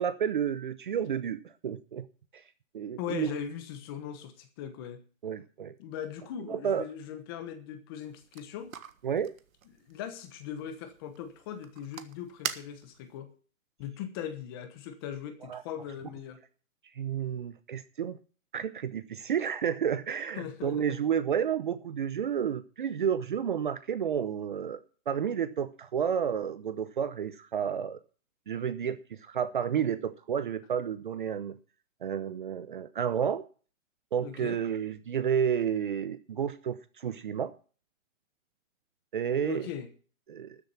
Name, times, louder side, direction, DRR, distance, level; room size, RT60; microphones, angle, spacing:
voice 1, 0.0-2.1 2.3-2.4 2.7-3.3 5.2-5.7 6.5-6.9 9.0-9.3 15.5-15.6 17.0-18.2 18.5-24.8 25.1-28.0 28.5-31.6 32.0-33.4 34.1-37.5 39.1-39.7 40.3-40.6, right 8 dB, 40° right, 0.7 m, -31 dB
voice 2, 3.0-5.0 5.8-8.7 9.9-13.3 13.8-16.4 20.4-21.0 34.2-34.6 39.4-39.9, left 9 dB, 15° left, 1.1 m, -39 dB
sound 1, 8.0-13.2, right 7 dB, 80° right, 1.5 m, -44 dB
13.0 x 7.4 x 6.9 m
hypercardioid pair, 165°, 41 cm